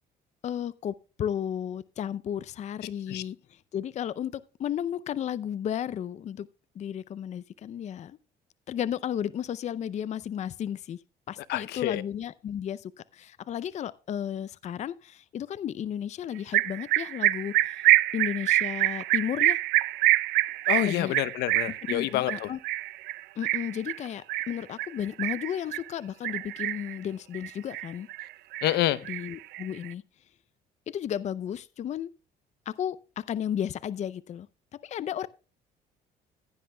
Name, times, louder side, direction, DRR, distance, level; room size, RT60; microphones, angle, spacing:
voice 1, 0.4-6.5 6.8-8.2 8.7-11.0 11.3-17.9 18.1-19.6 20.8-21.2 21.9-22.6 23.4-28.1 29.1-30.0 30.9-32.1 32.7-34.5 34.7-35.3, left 9 dB, 45° left, 0.5 m, -33 dB
voice 2, 11.5-12.0 20.7-22.5 28.6-29.0, left 14 dB, 80° left, 0.7 m, -27 dB
sound 1, 16.5-25.9 26.2-27.0 27.3-28.3 28.5-29.9, right 16 dB, 80° right, 0.6 m, -26 dB
15.5 x 10.5 x 2.2 m
cardioid pair, 110°, 17 cm